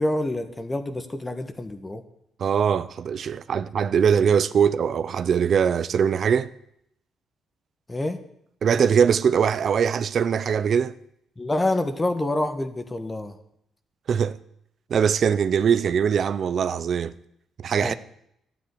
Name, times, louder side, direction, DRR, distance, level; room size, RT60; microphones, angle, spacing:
voice 1, 0.0-2.0 7.9-8.2 11.4-13.3 17.8-17.9, left 1 dB, 20° left, 1.6 m, -27 dB
voice 2, 2.4-6.5 8.6-11.0 14.1-14.4 14.9-17.1 17.6-17.9, right 7 dB, 55° right, 0.7 m, -21 dB
11.5 x 9.7 x 9.9 m
cardioid pair, 90°, 0 cm